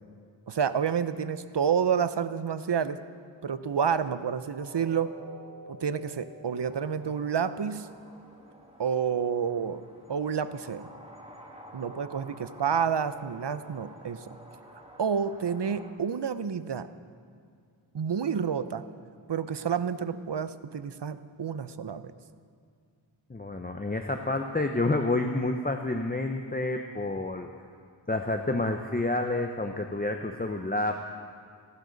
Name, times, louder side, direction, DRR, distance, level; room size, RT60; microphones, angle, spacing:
voice 1, 0.5-3.0 3.4-5.1 5.7-7.9 8.8-9.8 10.1-10.9 11.7-14.4 15.0-16.9 17.9-18.8 19.3-22.1, right 7 dB, 60° right, 12 dB, 0.7 m, -29 dB
sound 1, 4.6-10.5 10.9-11.1 11.6-11.7, right 2 dB, 85° right, 2.8 m, -50 dB
sound 2, 6.6-15.9, equal, 10° right, 2.1 m, -50 dB
voice 2, 23.3-27.5 28.1-30.9, left 2 dB, 20° left, 5 dB, 0.7 m, -29 dB
29.5 x 11.5 x 4.0 m, 2.2 s
wide cardioid pair, 55°, 48 cm